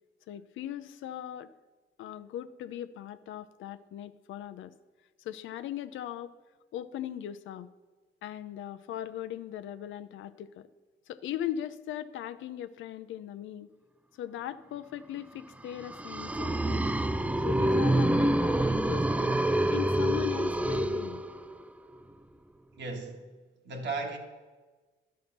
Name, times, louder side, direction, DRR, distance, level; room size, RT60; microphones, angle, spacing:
voice 1, 0.3-1.5 2.0-4.7 5.2-6.3 6.7-7.7 8.2-10.7 11.1-13.7 14.2-17.0 17.4-19.4 19.7-21.2, left 11 dB, 80° left, 0.5 m, -39 dB
sound 1, 15.7-21.6, right 1 dB, 5° right, 0.4 m, -27 dB
voice 2, 22.8-23.3 23.6-24.2, right 3 dB, 60° right, 1.7 m, -35 dB
11.5 x 5.6 x 6.5 m
cardioid pair, 90°, 20 cm